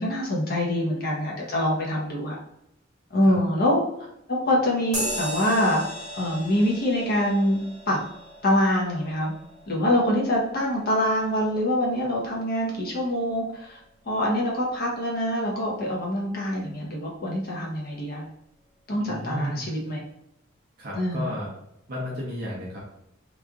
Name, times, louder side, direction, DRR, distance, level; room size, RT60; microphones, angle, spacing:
voice 1, 0.0-2.4 3.1-3.8 4.3-5.8 6.1-7.6 7.9-8.0 8.4-9.3 9.7-13.8 14.1-18.2 18.9-20.0 20.9-21.3, left 1 dB, 45° left, -2 dB, 0.8 m, -25 dB
sound 1, 4.9-12.8, right 1 dB, 20° right, 1.4 m, -37 dB
voice 2, 19.0-19.6 20.8-21.5 21.9-22.8, left 1 dB, 50° right, -4 dB, 0.8 m, -33 dB
3.0 x 2.4 x 3.5 m, 0.79 s
head